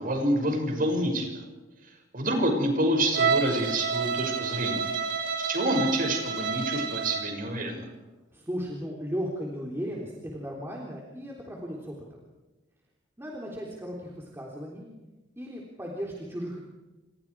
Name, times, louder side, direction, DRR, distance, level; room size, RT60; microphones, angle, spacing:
voice 1, 0.0-1.4 2.1-4.8 5.4-7.8, right 1 dB, 45° right, 3 dB, 6.2 m, -27 dB
Bowed string instrument, 3.1-7.4, right 6 dB, 70° right, 3.5 m, -29 dB
voice 2, 8.3-11.9 13.2-14.9 15.4-16.6, equal, 15° right, -2 dB, 3.7 m, -36 dB
29.5 x 27.0 x 4.9 m, 1.1 s
head